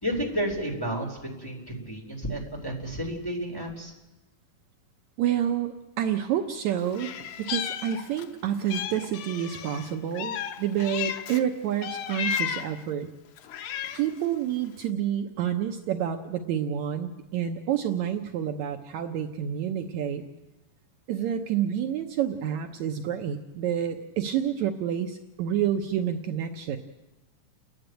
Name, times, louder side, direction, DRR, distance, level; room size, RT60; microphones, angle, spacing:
voice 1, 0.0-3.9, equal, 5° left, -2 dB, 3.3 m, -31 dB
voice 2, 5.2-7.1 7.4-13.1 13.9-20.2 21.1-26.8, right 9 dB, 70° right, 5 dB, 2.1 m, -28 dB
Meow, 6.9-8.3 8.7-11.4 11.8-12.8 13.4-14.2, left 8 dB, 90° left, 1.2 m, -34 dB
29.5 x 10.5 x 9.1 m, 1.0 s
omnidirectional pair, 3.6 m